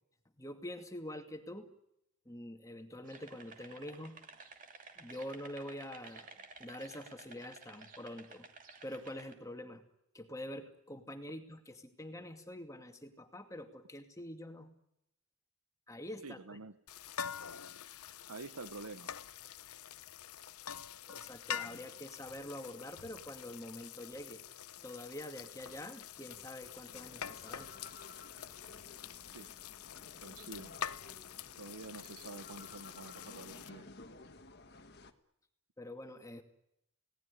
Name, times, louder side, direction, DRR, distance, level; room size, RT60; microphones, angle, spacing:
voice 1, 0.4-1.7 2.3-4.2 5.0-8.5 8.8-9.8 10.1-14.7 15.9-16.6 21.1-24.4 24.8-27.7 35.8-36.4, left 1 dB, 15° left, 6 dB, 2.3 m, -46 dB
sound 1, 3.0-9.3, right 4 dB, 35° right, 2.7 m, -54 dB
voice 2, 16.2-16.7 18.3-19.2 29.3-29.5 30.2-30.7 31.6-33.9, right 3 dB, 85° right, 14 dB, 1.1 m, -48 dB
sound 2, 16.9-33.7, left 8 dB, 80° left, 0.9 m, -46 dB
sound 3, 26.9-35.1, left 3 dB, 45° left, 1.7 m, -55 dB
28.5 x 18.5 x 9.9 m, 0.82 s
head